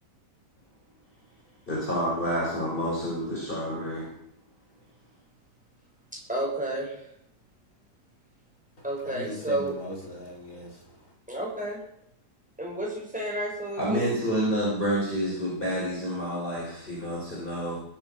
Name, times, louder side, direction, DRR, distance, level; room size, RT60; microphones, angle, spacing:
voice 1, 1.7-4.1 13.8-17.8, equal, 30° left, 5.3 m, -28 dB
voice 2, 6.1-7.0 8.8-9.7 11.3-11.8 12.6-14.1, right 1 dB, 5° right, 6.0 m, -31 dB
voice 3, 8.8-11.1, equal, 50° left, 4.4 m, -40 dB
20.5 x 9.0 x 7.1 m
omnidirectional pair, 1.7 m